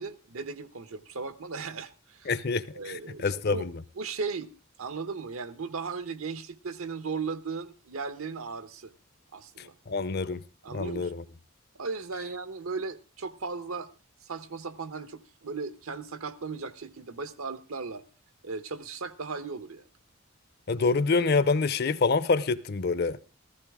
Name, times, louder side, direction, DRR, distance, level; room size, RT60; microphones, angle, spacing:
voice 1, 0.0-2.3 2.7-3.7 4.0-4.5 4.8-8.9 9.3-9.8 10.6-11.1 11.8-13.9 14.2-18.0 18.4-19.9, right 4 dB, 80° right, 1.0 m, -36 dB
voice 2, 2.3-3.8 9.6-10.4 10.7-11.2 20.7-23.2, left 4 dB, 50° left, 0.6 m, -27 dB
15.0 x 15.0 x 3.6 m
head